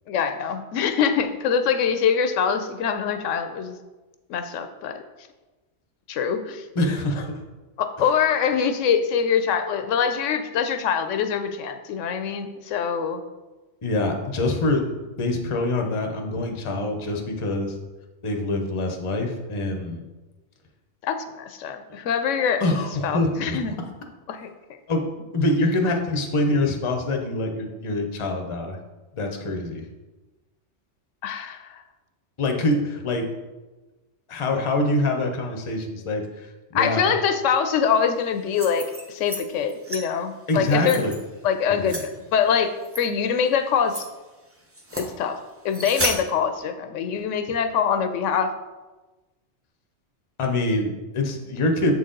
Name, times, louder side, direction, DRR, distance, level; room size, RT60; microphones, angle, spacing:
voice 1, 0.1-3.8 4.3-5.0 6.1-6.6 7.8-13.2 21.0-22.6 23.0-23.7 24.3-24.5 31.2-31.8 36.7-41.0 41.4-42.0 42.3-42.7 43.0-44.0 45.0-45.4 45.6-48.5, left 7 dB, 80° left, 8 dB, 0.9 m, -24 dB
voice 2, 6.7-7.4 13.8-17.8 18.2-20.0 22.6-23.6 24.9-28.8 29.1-29.9 32.4-33.3 34.3-37.2 40.5-41.2 41.7-42.0 50.4-51.9, left 2 dB, 30° left, 3 dB, 0.6 m, -25 dB
sound 1, 38.4-39.4 39.7-40.0 40.6-41.2 41.8-42.0 42.8-43.0 43.5-43.6 43.9-44.0 44.7-45.1 45.7-46.2, right 1 dB, 15° right, 0.5 m, -31 dB
7.1 x 4.1 x 3.8 m, 1.2 s
omnidirectional pair, 1.3 m